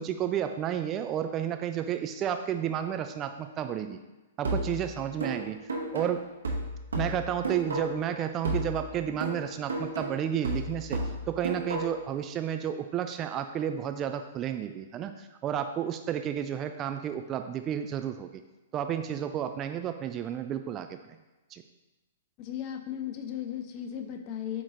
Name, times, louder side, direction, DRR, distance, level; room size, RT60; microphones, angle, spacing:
voice 1, 0.0-4.0 4.4-6.3 6.9-11.0 11.3-18.3 18.7-21.2 21.5-21.6, right 9 dB, 25° right, 7 dB, 0.3 m, -32 dB
sound 1, 4.4-8.1 8.4-12.1, right 2 dB, 70° right, 1.2 m, -33 dB
voice 2, 22.4-24.6, left 10 dB, 35° left, 5 dB, 0.6 m, -36 dB
8.4 x 3.0 x 3.8 m, 1.1 s
figure-of-eight pair, 110°, 0 cm